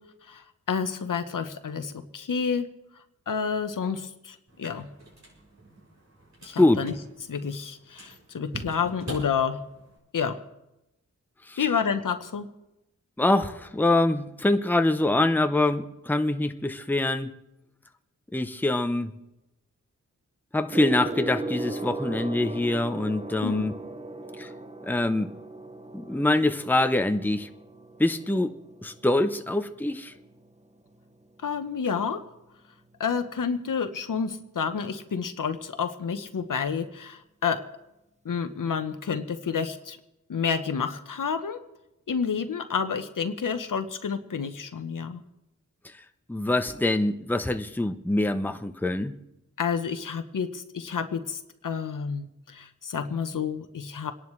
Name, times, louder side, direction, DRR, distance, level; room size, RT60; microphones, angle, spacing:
voice 1, 0.2-2.7 3.3-4.9 6.4-6.9 7.3-9.6 10.1-10.4 11.6-12.5 23.4-23.7 31.4-32.2 33.0-37.6 38.2-40.0 40.3-41.6 42.1-45.2 49.6-54.1, left 6 dB, 75° left, 9 dB, 1.1 m, -29 dB
sound 1, 4.5-10.0, right 1 dB, 60° right, 6.6 m, -44 dB
voice 2, 13.2-17.3 18.3-19.1 20.5-23.7 24.4-24.5 24.8-25.3 25.9-27.5 28.0-28.5 28.8-30.1 46.3-49.1, left 2 dB, 5° left, 8 dB, 0.7 m, -24 dB
Gong, 20.7-30.5 31.4-31.7, right 2 dB, 20° right, 0.9 m, -37 dB
27.5 x 11.0 x 3.2 m, 0.93 s
wide cardioid pair, 75°, 32 cm